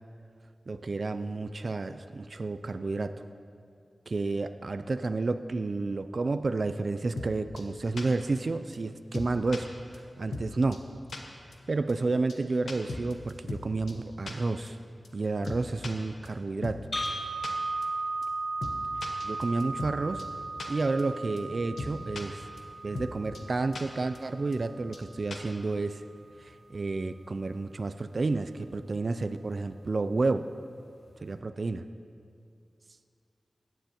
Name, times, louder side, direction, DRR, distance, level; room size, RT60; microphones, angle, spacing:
voice 1, 0.7-3.2 4.1-10.8 11.7-14.8 15.1-16.9 19.2-20.2 20.7-22.5 22.8-26.0 26.4-30.5 31.2-31.8, right 3 dB, 60° right, 9 dB, 0.3 m, -31 dB
sound 1, 7.2-7.3 7.6-7.7 8.0-8.1 8.4-8.5 8.7-8.8 9.1-9.6 9.9-10.0 10.3-10.5 10.7-10.8 11.1-11.2 11.5-11.6 11.9-12.0 12.3-12.4 12.7-13.6 13.9-14.0 14.3-14.4 14.7-14.8 15.0-15.1 15.4-15.9 16.2-16.3 16.6-16.8 17.0-17.1 17.4-17.5 17.8-17.9 18.2-18.3 18.6-18.7 19.0-19.9 20.2-20.3 20.6-20.7 21.0-21.1 21.4-21.5 21.8-22.2 22.6-22.7 22.9-23.1 23.3-23.4 23.7-23.8 24.1-24.2 24.5-24.6 24.9-25.0 25.3-25.5, left 2 dB, 85° left, 0.9 m, -37 dB
sound 2, 16.9-25.0, right 2 dB, 35° left, 1.5 m, -36 dB
17.0 x 9.2 x 2.9 m, 2.4 s
cardioid pair, 45°, 0 cm